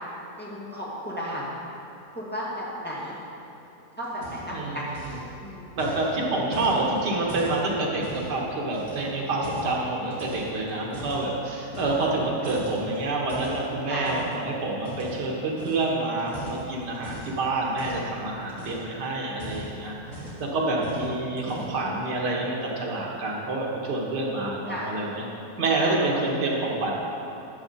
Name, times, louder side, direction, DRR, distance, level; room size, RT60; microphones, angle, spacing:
voice 1, 0.4-1.4 2.1-3.1 4.0-4.9 5.4-5.7 13.9-14.2 24.7-24.9 25.8-26.0, equal, 5° left, -7 dB, 1.7 m, -33 dB
sound 1, 4.0-4.6 4.9-5.3 5.8-8.3 8.7-9.8 10.1-11.2 11.7-12.2 12.4-14.3 14.8-15.2 15.6-15.8 16.2-17.3 17.8-18.1 18.4-18.9 19.3-20.5 20.8-21.1 21.4-21.8, equal, 50° right, 2.9 m, -39 dB
voice 2, 5.7-19.9 20.4-25.2 25.6-26.9, right 2 dB, 90° right, -2 dB, 2.0 m, -27 dB
12.5 x 7.3 x 4.3 m, 2.9 s
omnidirectional pair, 1.8 m